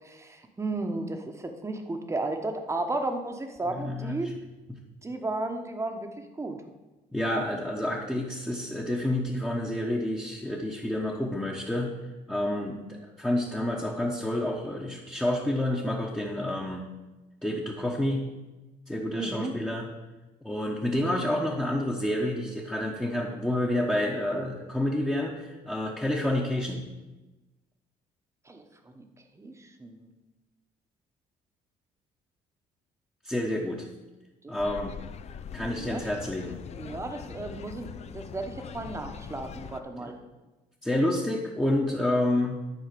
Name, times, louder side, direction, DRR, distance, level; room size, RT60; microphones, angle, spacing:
voice 1, 0.0-4.3 5.0-6.6 19.1-19.5 28.5-28.6 28.9-29.0 29.4-30.1 34.4-34.5 35.8-36.0 36.7-40.1, right 2 dB, 15° right, 5 dB, 1.1 m, -34 dB
voice 2, 3.7-4.1 7.1-11.9 12.3-16.9 17.4-18.2 18.9-19.9 20.4-26.8 33.2-33.9 34.5-35.0 35.5-36.6 40.0-40.1 40.8-42.6, left 1 dB, 5° left, -3 dB, 1.1 m, -29 dB
sound 1, 34.6-39.8, left 7 dB, 40° left, 0.5 m, -42 dB
11.0 x 4.4 x 6.8 m, 1.1 s
cardioid pair, 110°, 17 cm